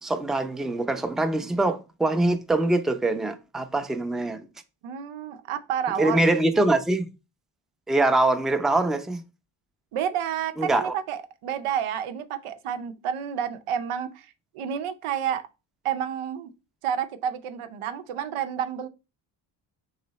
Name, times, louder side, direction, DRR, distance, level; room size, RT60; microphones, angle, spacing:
voice 1, 0.0-4.4 6.0-7.1 7.9-9.2 10.6-10.9, right 2 dB, ahead, 0.5 m, -23 dB
voice 2, 4.8-6.3 9.9-15.5 15.8-16.5 16.8-18.9, right 9 dB, 85° right, 0.7 m, -30 dB
3.7 x 3.2 x 4.0 m
cardioid pair, 80°, 49 cm